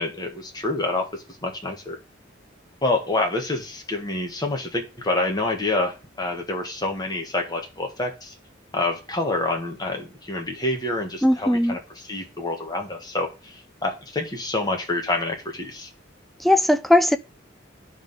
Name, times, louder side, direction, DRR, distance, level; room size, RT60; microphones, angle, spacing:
voice 1, 0.0-2.0 2.8-8.3 8.7-15.9, left 2 dB, 20° left, 1.5 m, -27 dB
voice 2, 11.2-11.8 16.4-17.2, left 1 dB, ahead, 0.3 m, -18 dB
10.0 x 3.6 x 5.6 m
head